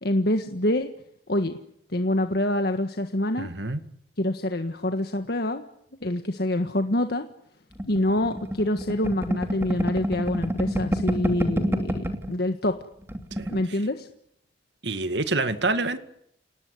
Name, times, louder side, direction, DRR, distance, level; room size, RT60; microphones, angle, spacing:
voice 1, 0.0-0.9 1.3-1.6 1.9-3.5 4.2-5.6 6.0-7.3 7.9-12.8 13.5-14.1, left 1 dB, 60° left, 6 dB, 1.6 m, -26 dB
voice 2, 3.4-3.8 13.4-13.5 14.8-16.0, right 2 dB, 75° right, 9 dB, 2.1 m, -26 dB
sound 1, 7.8-12.3 12.7-12.8 13.0-13.6, equal, 15° right, 2.8 m, -28 dB
28.5 x 19.0 x 9.6 m, 0.75 s
head